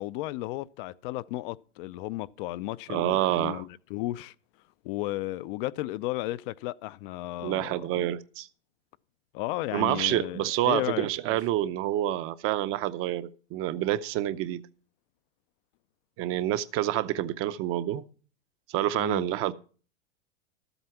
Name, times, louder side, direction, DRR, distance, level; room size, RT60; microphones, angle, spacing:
voice 1, 0.0-4.3 4.8-8.1 9.3-11.1 19.0-19.3, left 17 dB, 50° left, 0.5 m, -34 dB
voice 2, 2.9-3.6 7.4-8.5 9.7-14.6 16.2-18.0 18.7-19.5, right 13 dB, 40° right, 0.7 m, -28 dB
12.5 x 8.0 x 5.7 m
hypercardioid pair, 110°, 33 cm